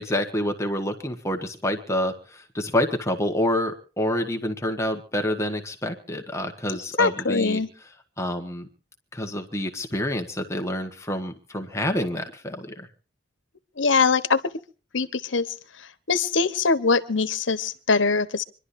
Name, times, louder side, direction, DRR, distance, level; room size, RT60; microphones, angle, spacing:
voice 1, 0.0-7.6 8.2-8.7 9.1-12.9, left 1 dB, 15° left, 4 dB, 1.3 m, -27 dB
voice 2, 7.0-7.7 13.8-14.4 14.9-15.5 16.1-18.4, left 4 dB, 90° left, 13 dB, 1.1 m, -22 dB
26.5 x 11.5 x 2.7 m, 0.37 s
head